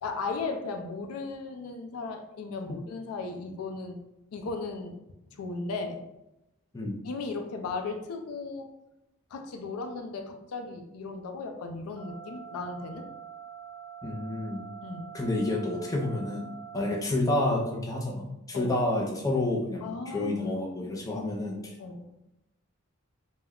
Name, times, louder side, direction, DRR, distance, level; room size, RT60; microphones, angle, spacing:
voice 1, 0.0-4.0 4.3-5.0 5.4-6.0 7.0-8.7 9.3-13.0 14.8-15.1 16.8-16.9 18.5-18.7 19.8-21.2 21.8-22.0, left 3 dB, 90° left, 5 dB, 0.4 m, -36 dB
sound 1, 12.0-17.0, right 8 dB, 65° right, 0.5 m, -45 dB
voice 2, 14.0-14.6 15.1-16.5 16.7-21.7, left 2 dB, 15° left, -2 dB, 0.4 m, -29 dB
2.2 x 2.1 x 3.5 m, 0.91 s
head